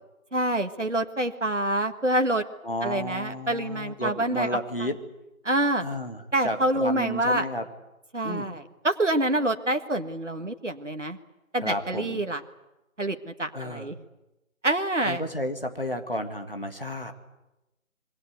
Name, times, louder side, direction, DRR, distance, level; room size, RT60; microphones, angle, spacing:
voice 1, 0.3-2.4 2.8-4.5 4.8-4.9 5.4-5.8 6.3-7.5 8.1-11.2 11.5-12.4 13.0-14.0 14.6-15.2, right 1 dB, 60° right, 7 dB, 1.7 m, -26 dB
voice 2, 2.6-5.0 5.8-7.7 8.2-8.5 11.6-12.2 13.5-13.9 15.0-17.1, left 1 dB, 40° left, 6 dB, 2.1 m, -32 dB
26.0 x 22.5 x 8.1 m, 0.96 s
figure-of-eight pair, 175°, 42 cm